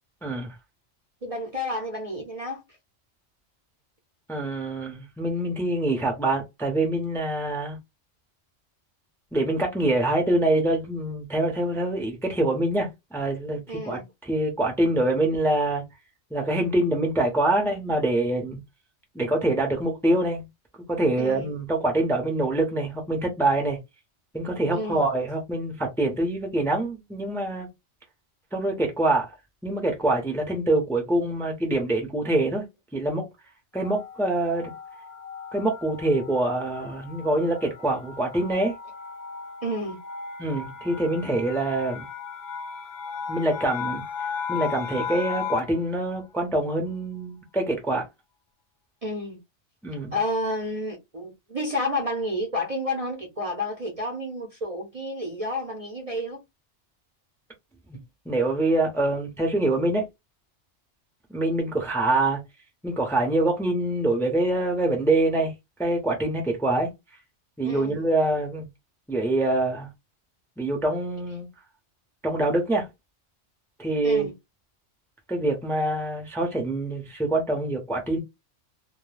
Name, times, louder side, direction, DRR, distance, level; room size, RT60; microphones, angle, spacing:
voice 1, 0.2-0.5 4.3-7.8 9.3-15.8 16.3-18.6 19.1-20.5 20.9-23.8 24.3-27.7 28.5-29.3 29.6-32.6 32.9-33.2 33.7-34.7 35.5-38.7 40.4-42.0 43.3-44.0 44.5-48.0 49.8-50.1 57.9-58.0 58.3-60.1 61.3-62.4 62.8-65.5 65.8-66.9 67.6-68.7 69.1-69.9 70.6-71.5 72.2-72.9 73.8-74.3 75.3-78.2, right 2 dB, 5° left, 0.6 m, -25 dB
voice 2, 1.2-2.6 13.7-14.1 21.2-21.5 24.7-25.0 39.6-40.0 49.0-49.4 50.1-56.4 67.7-68.1 74.0-74.3, left 1 dB, 40° right, 0.6 m, -30 dB
sound 1, 33.8-45.9, left 6 dB, 65° left, 0.8 m, -36 dB
2.3 x 2.2 x 3.2 m
omnidirectional pair, 1.2 m